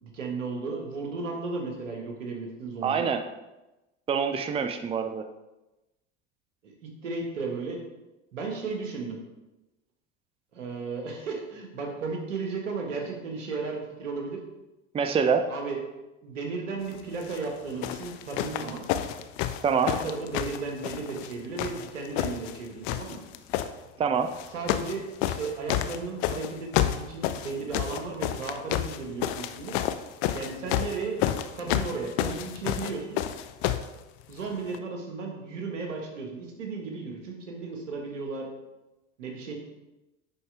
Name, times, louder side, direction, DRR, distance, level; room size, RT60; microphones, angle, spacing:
voice 1, 0.0-3.1 6.6-6.7 7.0-7.8 8.3-9.2 10.5-14.4 15.5-15.8 16.2-18.9 19.8-23.2 24.5-29.8 30.3-31.2 31.5-33.2 34.3-38.5 39.2-39.6, right 4 dB, 85° right, 2 dB, 1.6 m, -34 dB
voice 2, 2.8-3.2 4.1-5.3 14.9-15.5 19.6-19.9 24.0-24.3, right 6 dB, 15° right, 7 dB, 0.5 m, -25 dB
sound 1, 17.2-17.4 17.8-21.3 21.6-22.6 22.8-23.7 24.3-25.0 25.2-33.9 34.7-34.8, left 12 dB, 60° left, 0.6 m, -29 dB
10.5 x 4.2 x 3.4 m, 1.0 s
hypercardioid pair, 80°, 37 cm